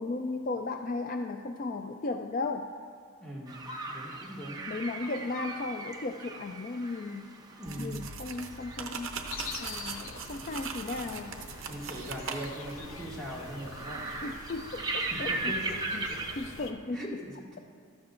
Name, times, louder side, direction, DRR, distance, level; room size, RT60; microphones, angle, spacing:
voice 1, 0.0-2.7 4.7-7.3 7.8-9.1 9.6-11.4 14.2-15.5 15.9-16.1 16.4-17.0, left 3 dB, 40° left, 5 dB, 0.4 m, -35 dB
voice 2, 3.2-4.7 7.6-8.1 11.7-14.1 15.0-15.8 16.1-16.4 16.9-17.5, equal, 5° left, -6 dB, 1.9 m, -41 dB
sound 1, 3.5-16.3, right 3 dB, 15° right, 0.7 m, -39 dB
sound 2, 7.6-12.8, right 5 dB, 60° right, 0.7 m, -40 dB
sound 3, 9.3-16.7, left 3 dB, 65° left, 0.8 m, -45 dB
15.0 x 13.0 x 2.5 m, 2.2 s
head